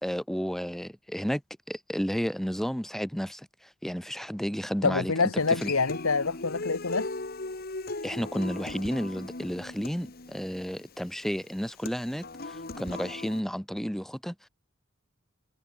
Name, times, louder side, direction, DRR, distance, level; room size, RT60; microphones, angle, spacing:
voice 1, 0.0-1.4 1.7-3.5 3.8-5.1 5.6-5.7 8.0-14.3, equal, ahead, 1.3 m, -32 dB
voice 2, 4.8-7.2, left 4 dB, 75° left, 1.3 m, -26 dB
Human voice / Acoustic guitar, 5.4-13.4, left 2 dB, 45° left, 1.7 m, -38 dB
head